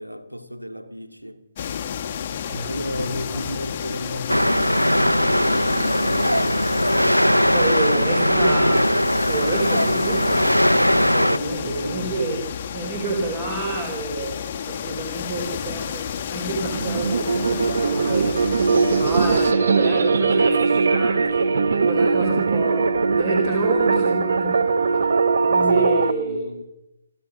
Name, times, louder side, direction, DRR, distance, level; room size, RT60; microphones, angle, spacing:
voice 1, 0.0-1.4 2.7-6.3 11.4-12.5 25.5-26.6, equal, 90° right, 2.8 m, -34 dB
sound 1, 1.6-19.5, left 8 dB, 30° left, 1.2 m, -31 dB
voice 2, 3.0-3.4 7.4-10.6 11.0-12.4 12.7-18.5 18.9-21.5 21.7-25.1 25.3-26.5, right 3 dB, 25° right, 4.7 m, -29 dB
sound 2, 4.3-11.4, equal, 90° left, 0.7 m, -19 dB
sound 3, 16.5-26.1, right 4 dB, 55° right, 1.1 m, -20 dB
30.0 x 13.5 x 6.5 m
figure-of-eight pair, 140°, 0 cm